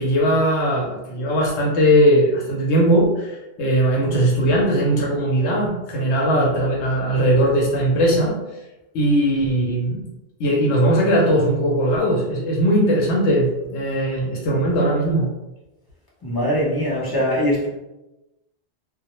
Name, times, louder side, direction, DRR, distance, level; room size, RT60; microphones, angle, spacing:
voice 1, 0.0-8.4 8.9-10.0 10.4-15.3, equal, 85° left, -2 dB, 0.9 m, -19 dB
voice 2, 16.2-17.7, equal, 30° left, -6 dB, 0.5 m, -21 dB
2.1 x 2.1 x 2.9 m, 0.99 s
omnidirectional pair, 1.1 m